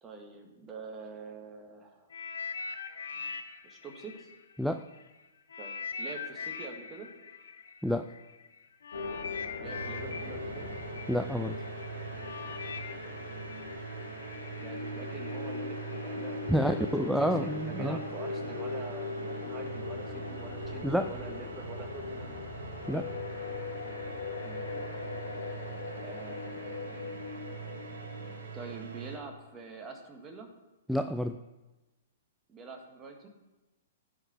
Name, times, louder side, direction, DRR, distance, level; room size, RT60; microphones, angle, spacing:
voice 1, 0.0-2.1 3.6-4.3 5.6-7.1 9.6-10.7 14.6-16.9 17.2-22.4 24.4-24.6 26.0-26.9 28.5-30.5 32.5-33.3, right 3 dB, 20° right, 3 dB, 1.8 m, -45 dB
sound 1, 2.1-5.0 5.5-14.5 15.2-15.3, left 5 dB, 70° left, 0.9 m, -42 dB
sound 2, 8.9-28.4, left 3 dB, 90° left, 1.8 m, -40 dB
sound 3, 9.6-29.2, right 6 dB, 70° right, 1.1 m, -43 dB
voice 2, 11.1-11.6 16.5-18.0 20.8-21.1 22.9-23.1 30.9-31.4, equal, ahead, 7 dB, 0.4 m, -29 dB
15.0 x 5.1 x 4.4 m, 1.1 s
hypercardioid pair, 120°, 0 cm